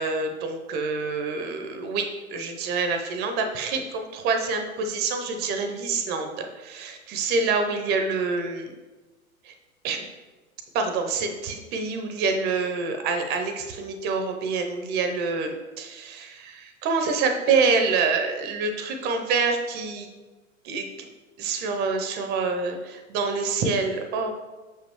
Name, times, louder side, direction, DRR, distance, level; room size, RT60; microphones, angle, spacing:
voice 1, 0.0-2.1 2.3-8.7 9.5-9.6 9.8-10.0 10.7-20.1 20.6-21.1 21.4-24.3, right 4 dB, 25° right, 5 dB, 0.6 m, -26 dB
6.9 x 5.5 x 3.0 m, 1.2 s
figure-of-eight pair, 95°, 42 cm